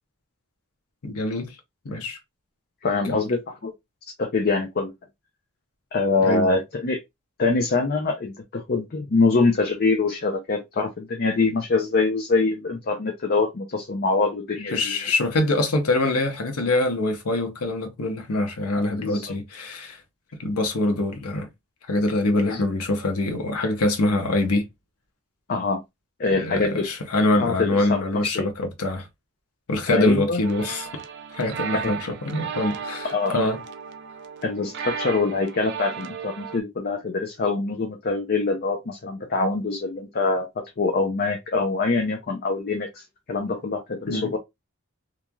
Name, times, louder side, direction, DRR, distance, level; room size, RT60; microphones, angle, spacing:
voice 1, 1.0-1.6 1.8-2.2 3.1-3.2 6.2-6.6 14.7-20.0 20.4-21.5 21.9-24.7 26.4-29.1 29.7-31.0 31.3-33.6 44.1-44.3, left 2 dB, 80° left, 0.8 m, -24 dB
voice 2, 2.8-3.7 4.2-4.9 5.9-7.0 7.4-15.0 19.0-19.2 22.4-22.6 25.5-25.8 26.2-26.8 27.4-28.5 29.9-30.4 31.7-31.9 33.1-33.4 34.4-44.4, left 3 dB, 45° left, 0.5 m, -24 dB
sound 1, 30.4-36.6, right 6 dB, 50° right, 0.4 m, -35 dB
3.1 x 2.5 x 2.2 m
head